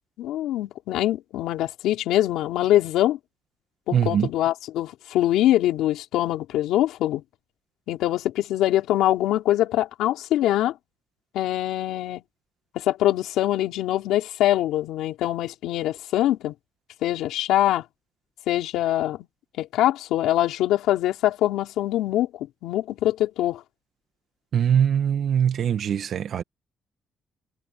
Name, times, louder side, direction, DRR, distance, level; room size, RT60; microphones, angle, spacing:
voice 1, 0.2-3.2 3.9-7.2 7.9-10.8 11.3-12.2 12.8-16.5 17.0-17.8 18.5-19.2 19.6-23.6, left 13 dB, 90° left, 3.4 m, -23 dB
voice 2, 3.9-4.3 24.5-26.4, right 8 dB, 60° right, 1.6 m, -22 dB
cardioid pair, 90°, 0 cm